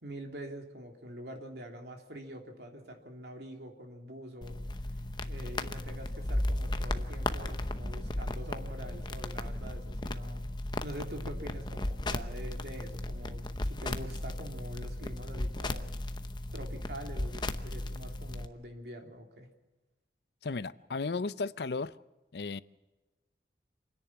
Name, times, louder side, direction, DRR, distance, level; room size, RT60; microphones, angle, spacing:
voice 1, 0.0-4.6 5.2-10.5 10.8-15.9 16.5-19.5, equal, 65° right, 3.0 m, -45 dB
sound 1, 4.4-18.5, left 1 dB, 25° left, 0.8 m, -35 dB
voice 2, 20.4-21.9 22.3-22.6, left 4 dB, 65° left, 0.6 m, -34 dB
27.0 x 10.5 x 9.7 m
head